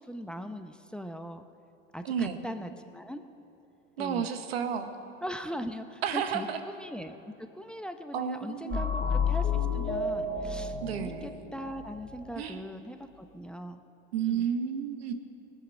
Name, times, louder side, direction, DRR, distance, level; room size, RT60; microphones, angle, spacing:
voice 1, 0.0-1.4 1.9-3.2 4.0-4.3 5.2-7.2 7.5-13.8 14.2-14.5, equal, 5° left, 8 dB, 0.7 m, -40 dB
voice 2, 2.0-2.5 4.0-4.9 6.0-6.6 8.1-9.0 10.8-11.3 12.4-12.6 14.1-15.1, right 8 dB, 85° right, 8 dB, 1.0 m, -32 dB
sound 1, 8.7-12.3, left 5 dB, 30° left, 3.4 m, -31 dB
19.5 x 8.2 x 6.2 m, 3.0 s
hypercardioid pair, 80°, 30 cm